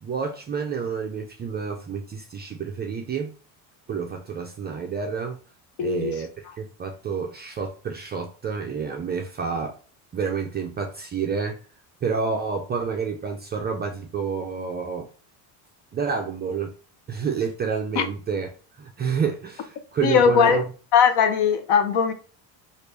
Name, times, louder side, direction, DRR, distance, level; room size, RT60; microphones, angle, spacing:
voice 1, 0.0-3.3 3.9-5.4 5.8-9.8 10.1-11.6 12.0-15.1 15.9-16.7 17.1-18.5 18.8-20.6, right 5 dB, 25° right, 0.3 m, -29 dB
voice 2, 5.8-6.1 18.0-18.1 20.0-20.6 20.9-22.1, left 7 dB, 55° left, 0.7 m, -19 dB
3.0 x 2.5 x 3.3 m
supercardioid pair, 115°, 48 cm